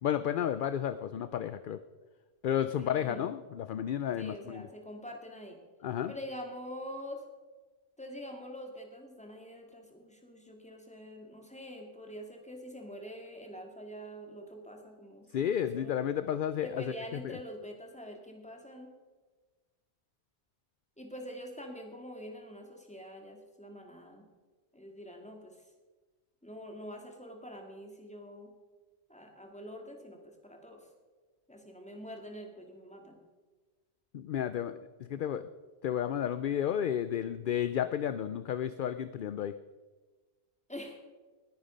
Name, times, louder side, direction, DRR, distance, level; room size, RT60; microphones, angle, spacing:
voice 1, 0.0-1.8 2.4-4.7 5.8-6.1 15.3-16.8 17.2-17.3 34.1-35.4 35.8-39.5, left 9 dB, 60° left, 12 dB, 0.7 m, -32 dB
voice 2, 2.8-3.3 4.1-5.6 6.1-7.2 8.0-15.9 16.6-18.9 21.0-24.3 24.7-25.6 26.4-28.5 29.1-30.9 31.5-33.2 40.7-41.0, equal, 5° left, 2 dB, 2.2 m, -45 dB
20.0 x 9.5 x 5.2 m, 1.3 s
omnidirectional pair, 1.1 m